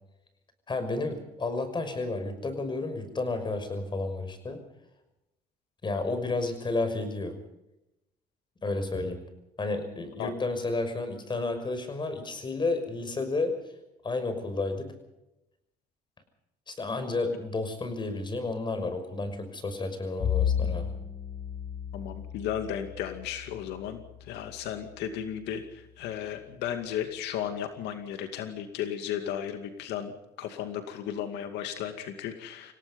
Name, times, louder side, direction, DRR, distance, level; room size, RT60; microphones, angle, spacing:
voice 1, 0.7-4.6 5.8-7.4 8.6-9.2 9.6-13.6 14.0-14.9 16.7-20.9, left 3 dB, 25° left, 9 dB, 6.0 m, -31 dB
Bowed string instrument, 20.2-24.8, left 8 dB, 55° left, 6.4 m, -33 dB
voice 2, 21.9-30.1 30.4-32.7, left 9 dB, 85° left, 7 dB, 2.4 m, -35 dB
28.0 x 17.5 x 5.4 m, 0.91 s
cardioid pair, 110°, 17 cm